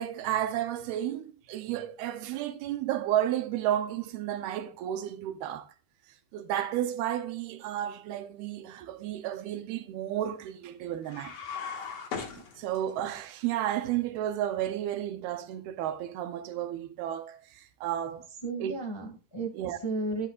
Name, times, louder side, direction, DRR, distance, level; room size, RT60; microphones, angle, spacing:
voice 1, 0.0-5.7 6.3-11.4 12.3-18.3 18.6-18.7 19.6-19.8, right 11 dB, 75° right, 2.8 m, -32 dB
sound 1, 11.0-13.1, left 6 dB, 50° left, 2.4 m, -38 dB
voice 2, 18.3-20.3, right 3 dB, 15° left, 0.8 m, -34 dB
12.5 x 11.0 x 2.5 m
omnidirectional pair, 4.6 m